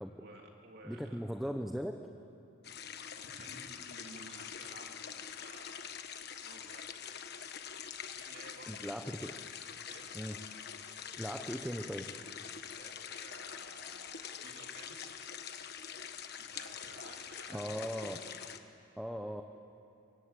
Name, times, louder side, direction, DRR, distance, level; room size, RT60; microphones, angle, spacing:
voice 1, 0.2-1.4 3.1-5.9 6.4-6.9 8.1-9.3 9.9-10.1 12.8-15.1 16.4-18.2, right 2 dB, 50° right, 1 dB, 3.2 m, -54 dB
voice 2, 0.8-2.0 8.7-9.3 10.1-10.4 11.2-12.1 17.5-18.2 19.0-19.4, equal, ahead, 4 dB, 0.9 m, -38 dB
sound 1, 2.6-18.6, left 8 dB, 50° left, 1.2 m, -45 dB
26.5 x 24.5 x 8.4 m, 2.9 s
head